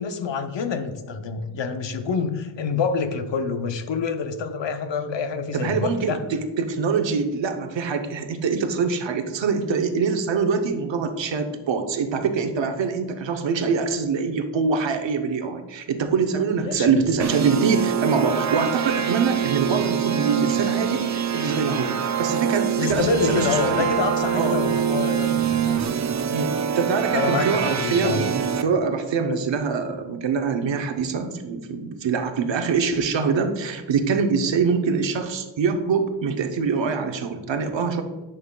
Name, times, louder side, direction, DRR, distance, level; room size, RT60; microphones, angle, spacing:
voice 1, 0.0-6.2 16.6-16.9 22.8-25.8 27.1-28.2, left 5 dB, 75° left, 8 dB, 0.7 m, -26 dB
voice 2, 5.5-23.8 24.4-24.6 26.3-38.0, right 5 dB, 75° right, 7 dB, 0.8 m, -24 dB
sound 1, 17.2-28.6, right 8 dB, 40° right, 0.4 m, -25 dB
11.0 x 5.5 x 2.2 m, 1.2 s
wide cardioid pair, 75°, 44 cm